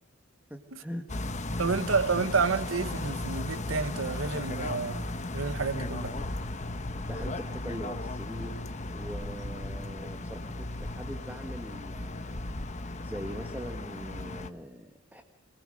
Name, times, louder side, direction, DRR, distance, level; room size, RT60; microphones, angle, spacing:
voice 1, 0.5-1.1 1.6-1.9 7.0-8.5 8.9-15.2, equal, 10° right, 1.4 m, -42 dB
sound 1, 1.1-14.5, left 2 dB, 35° left, 1.0 m, -36 dB
voice 2, 1.6-6.1, right 4 dB, 90° right, 1.1 m, -30 dB
26.0 x 19.5 x 6.4 m
head